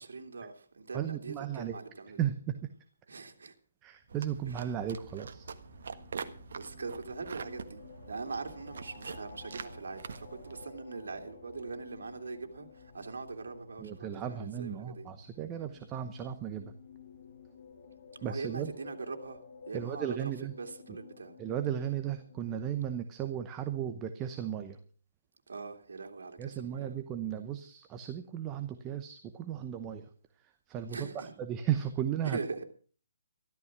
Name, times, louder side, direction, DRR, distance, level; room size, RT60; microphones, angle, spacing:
voice 1, 0.0-2.2 3.1-3.5 4.5-4.6 6.5-7.8 8.1-15.0 18.2-20.3 20.6-21.3 25.5-27.0 30.9-31.3 32.2-32.6, right 4 dB, 80° right, 2.8 m, -42 dB
voice 2, 0.9-1.8 2.2-2.5 3.8-5.5 13.8-16.7 18.2-18.7 19.7-20.5 21.4-24.8 26.4-30.1 30.4-32.4, right 10 dB, 15° right, 0.9 m, -35 dB
Aircraft, 3.8-19.9, left 2 dB, ahead, 6.0 m, -62 dB
sound 1, 4.1-10.6, right 5 dB, 60° right, 1.4 m, -45 dB
sound 2, 5.6-22.9, left 6 dB, 45° left, 3.1 m, -54 dB
13.5 x 13.0 x 6.0 m
hypercardioid pair, 170°, 0 cm